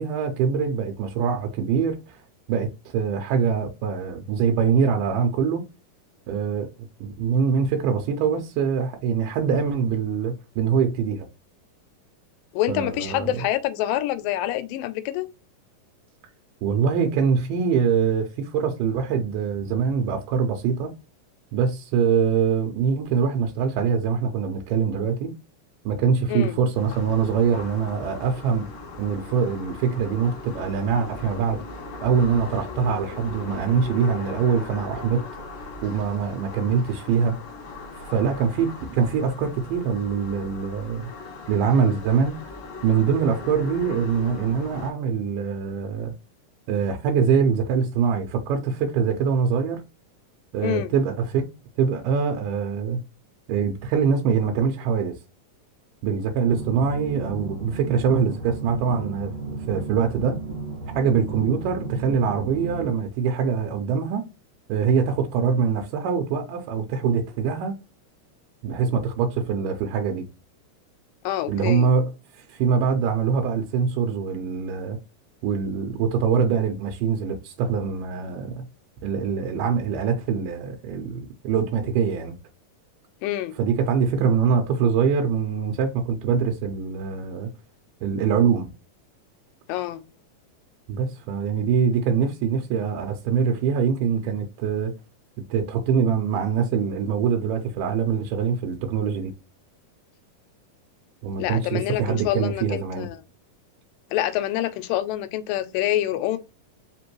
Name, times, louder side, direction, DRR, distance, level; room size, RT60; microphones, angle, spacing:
voice 1, 0.0-2.2 2.5-5.7 6.3-6.7 7.0-11.3 12.7-13.4 16.6-20.9 21.5-25.3 25.9-28.7 29.0-31.6 32.0-35.2 35.8-37.4 37.9-41.0 41.5-42.4 42.8-46.1 46.7-49.8 50.5-51.5 51.8-53.0 53.5-55.2 56.0-60.4 60.9-64.3 64.7-67.7 68.6-70.2 71.5-75.0 75.4-78.7 79.0-82.4 83.6-87.5 88.0-88.7 90.9-94.9 95.5-99.3 101.2-103.1, right 6 dB, 85° right, 2.2 m, -23 dB
voice 2, 12.5-15.3 26.3-26.6 50.6-50.9 71.2-71.9 83.2-83.6 89.7-90.0 101.4-103.2 104.1-106.4, left 13 dB, 90° left, 2.3 m, -26 dB
sound 1, 26.7-44.9, left 3 dB, 70° left, 1.2 m, -39 dB
sound 2, 56.5-62.9, right 3 dB, 55° right, 1.4 m, -34 dB
5.1 x 2.9 x 3.0 m
omnidirectional pair, 3.9 m